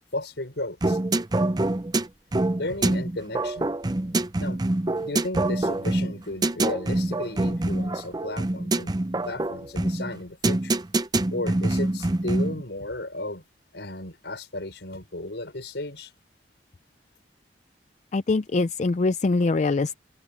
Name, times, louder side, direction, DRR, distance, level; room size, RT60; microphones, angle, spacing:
voice 1, 0.1-1.0 2.6-3.7 4.4-4.6 5.0-8.9 9.2-10.8 11.3-13.4 13.7-16.1, left 2 dB, 80° left, 4.9 m, -34 dB
sound 1, 0.8-12.6, right 2 dB, 25° right, 0.5 m, -25 dB
voice 2, 18.1-20.0, left 3 dB, 40° left, 0.4 m, -23 dB
open air
head